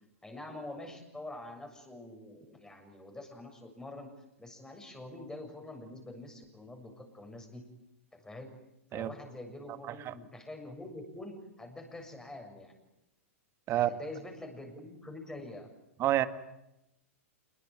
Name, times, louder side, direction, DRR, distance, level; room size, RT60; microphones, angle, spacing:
voice 1, 0.2-4.1 4.4-7.6 8.1-8.6 8.9-12.7 13.7-15.7, left 2 dB, 10° left, 4 dB, 7.2 m, -45 dB
voice 2, 8.9-9.1 9.9-10.1 13.7-13.9 16.0-16.3, right 13 dB, 35° right, 12 dB, 1.9 m, -28 dB
27.0 x 22.0 x 9.4 m, 0.88 s
hypercardioid pair, 105°, 8 cm